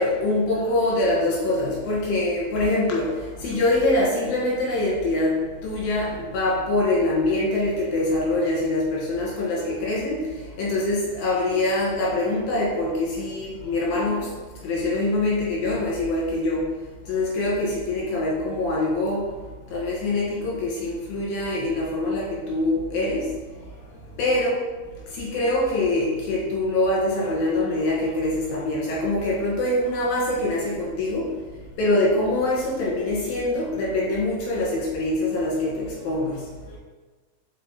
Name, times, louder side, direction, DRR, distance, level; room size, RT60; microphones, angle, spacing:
voice 1, 0.0-16.7 17.0-19.3 19.7-24.6 24.9-31.3 31.8-36.8, left 2 dB, 70° left, -4 dB, 3.3 m, -24 dB
5.4 x 5.3 x 4.2 m, 1.3 s
omnidirectional pair, 4.5 m